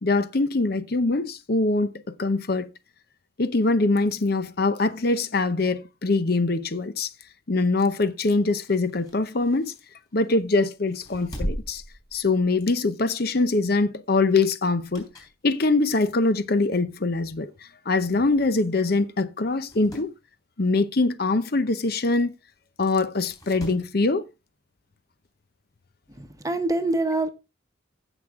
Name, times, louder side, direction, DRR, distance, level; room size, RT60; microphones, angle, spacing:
voice 1, 0.0-2.7 3.4-7.1 7.5-9.7 10.1-11.8 12.1-15.1 15.4-17.5 17.9-20.1 20.6-22.3 22.8-24.3, left 3 dB, 50° left, 0.7 m, -23 dB
sound 1, 8.4-10.4 10.9-12.8 13.1-13.3 14.6-15.4 15.9-16.0 16.9-17.0 17.2-17.3 17.5-17.6 18.5-18.7 19.0-19.1 19.5-20.1 22.0-22.1 23.1-23.9 25.2-25.3, equal, 20° left, 4.1 m, -39 dB
voice 2, 26.2-27.3, right 2 dB, 15° right, 1.0 m, -25 dB
16.0 x 6.2 x 3.6 m
head